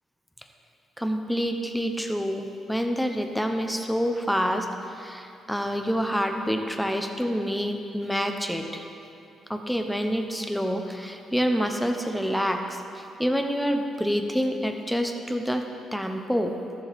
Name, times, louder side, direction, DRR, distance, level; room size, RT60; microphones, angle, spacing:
voice 1, 1.0-8.8 9.5-15.6 15.9-16.5, equal, ahead, 4 dB, 0.8 m, -27 dB
13.5 x 7.1 x 3.5 m, 2.8 s
cardioid pair, 90°, 0 cm